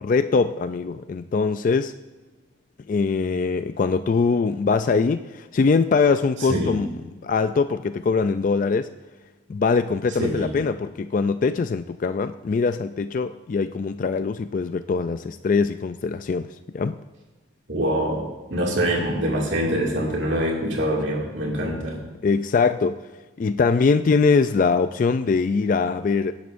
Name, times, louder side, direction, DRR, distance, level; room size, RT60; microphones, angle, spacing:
voice 1, 0.0-1.9 2.9-6.9 7.2-8.9 9.5-17.0 22.2-23.0 23.4-26.3, left 4 dB, 45° left, 11 dB, 0.3 m, -22 dB
voice 2, 10.2-10.5 17.7-22.0, equal, 75° right, -2 dB, 2.3 m, -24 dB
18.0 x 10.5 x 2.6 m, 1.2 s
head